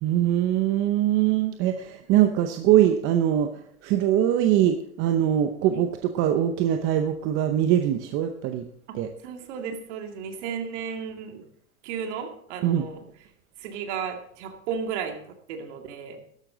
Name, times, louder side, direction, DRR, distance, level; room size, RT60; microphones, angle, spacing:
voice 1, 0.0-3.5 3.8-8.7 8.9-9.1 12.6-12.9, right 11 dB, 30° right, 6 dB, 0.7 m, -22 dB
voice 2, 9.2-11.4 11.8-13.0 13.6-15.2 15.5-16.2, right 7 dB, 55° right, 4 dB, 2.4 m, -34 dB
13.0 x 11.5 x 3.9 m, 0.67 s
hypercardioid pair, 135°, 43 cm